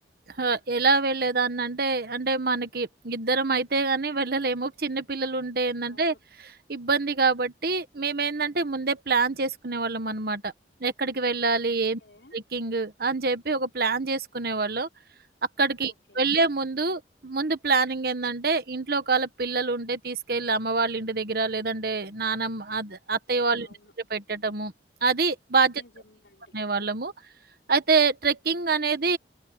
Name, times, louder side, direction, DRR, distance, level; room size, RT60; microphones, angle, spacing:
voice 1, 0.4-10.5 10.8-12.0 12.3-14.9 15.6-23.7 24.1-24.7 25.0-25.8 26.5-27.1 27.7-29.2, right 4 dB, 60° right, 1.3 m, -26 dB
voice 2, 5.8-6.2 11.7-12.4 15.8-16.5 23.5-23.9 25.8-26.5, left 2 dB, 75° left, 4.8 m, -56 dB
open air
head